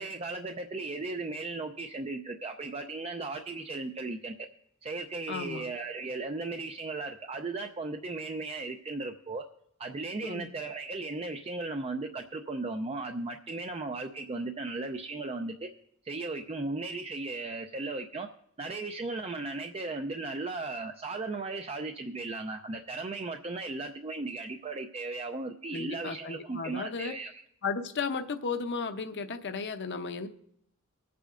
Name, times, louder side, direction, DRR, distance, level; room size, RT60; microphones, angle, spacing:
voice 1, 0.0-4.5 4.8-9.5 9.8-15.7 16.0-18.3 18.6-27.4, right 3 dB, 30° right, 5 dB, 0.5 m, -36 dB
voice 2, 5.3-5.7 10.2-10.5 25.7-27.2 27.6-30.3, left 5 dB, 55° left, 7 dB, 0.7 m, -34 dB
24.5 x 8.4 x 2.5 m, 0.72 s
head